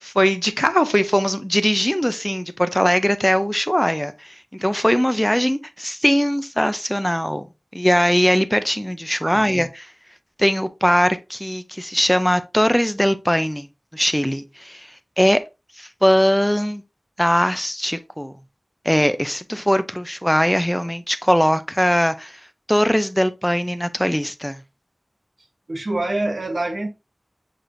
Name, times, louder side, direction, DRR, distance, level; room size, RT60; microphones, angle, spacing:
voice 1, 0.0-7.5 7.7-9.7 10.4-13.7 13.9-14.9 15.2-15.4 15.8-16.8 17.2-18.3 18.8-22.4 22.7-24.6, equal, 5° left, 0.4 m, -20 dB
voice 2, 9.2-9.7 25.7-26.9, right 2 dB, 75° right, 0.9 m, -26 dB
6.6 x 3.0 x 2.5 m
wide cardioid pair, 45°, 0 cm